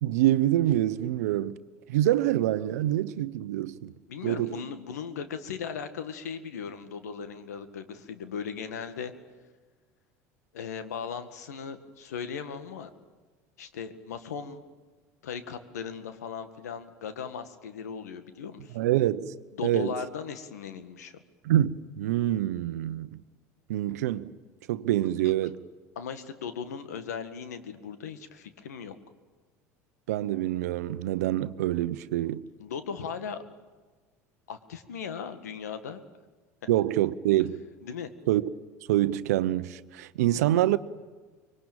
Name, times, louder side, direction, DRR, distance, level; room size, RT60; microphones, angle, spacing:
voice 1, 0.0-1.6 1.9-3.9 4.2-4.6 18.7-19.3 19.6-19.9 21.4-23.2 23.7-24.4 24.7-25.6 30.1-32.4 36.7-37.7 38.3-38.5 38.9-40.8, right 13 dB, 75° right, 0.9 m, -26 dB
voice 2, 4.1-9.1 10.5-12.9 13.6-14.6 15.2-18.8 19.5-21.1 26.0-29.0 32.6-33.4 34.5-36.0 37.8-38.1, left 6 dB, 85° left, 1.9 m, -37 dB
25.0 x 23.0 x 9.0 m
hypercardioid pair, 80°, 9 cm